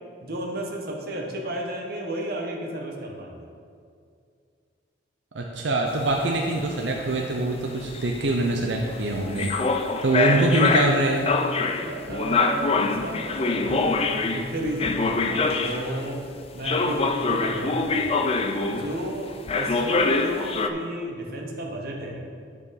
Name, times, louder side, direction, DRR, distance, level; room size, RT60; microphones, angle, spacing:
voice 1, 0.2-3.5 11.8-16.2 16.5-18.2 18.7-22.2, right 1 dB, 60° right, 0 dB, 1.1 m, -33 dB
voice 2, 5.3-9.5 10.0-11.3, right 2 dB, 90° right, 1 dB, 0.7 m, -24 dB
sound 1, 5.9-16.1 16.6-19.1 19.5-20.7, left 3 dB, 35° left, 0.4 m, -25 dB
10.5 x 4.9 x 4.1 m, 2.2 s
head